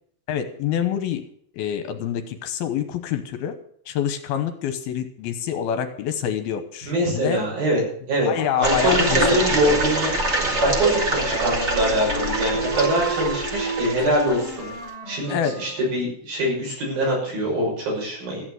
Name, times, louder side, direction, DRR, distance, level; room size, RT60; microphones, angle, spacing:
voice 1, 0.3-1.2 1.5-3.6 3.9-7.4 8.2-9.2 9.5-9.8 15.3-15.6, left 9 dB, 75° left, 9 dB, 2.8 m, -26 dB
voice 2, 6.9-7.8 8.1-8.3 8.6-10.1 10.6-14.7 15.1-18.4, right 1 dB, 60° right, -2 dB, 8.1 m, -23 dB
sound 1, 8.6-14.7, right 2 dB, 35° right, 1.0 m, -25 dB
Wind instrument woodwind instrument, 10.0-15.9, right 2 dB, 10° right, 5.4 m, -32 dB
14.5 x 8.8 x 7.7 m, 0.64 s
omnidirectional pair, 4.7 m